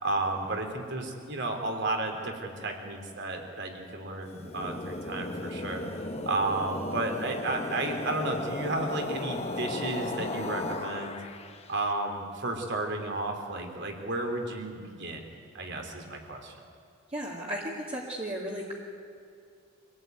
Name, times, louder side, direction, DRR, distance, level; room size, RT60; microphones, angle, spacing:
voice 1, 0.0-5.8 6.2-11.2 11.7-15.3 15.5-16.5, right 2 dB, 55° right, 4 dB, 3.5 m, -32 dB
sound 1, 4.3-11.7, left 2 dB, 30° left, 1.3 m, -35 dB
voice 2, 17.1-18.7, equal, 30° right, -4 dB, 2.6 m, -35 dB
25.5 x 18.0 x 9.4 m, 2.5 s
head